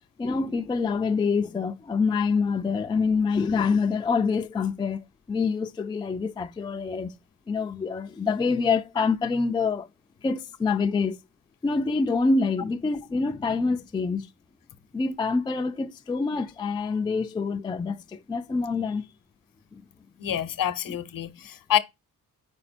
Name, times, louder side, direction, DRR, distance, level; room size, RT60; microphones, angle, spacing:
voice 1, 0.2-7.1 7.5-9.9 10.2-11.2 11.6-14.3 14.9-19.1 19.7-19.8 20.9-21.0, left 4 dB, 15° left, 0.3 m, -26 dB
voice 2, 20.2-21.8, left 10 dB, 65° left, 0.7 m, -27 dB
5.2 x 4.9 x 4.2 m
wide cardioid pair, 150°, 36 cm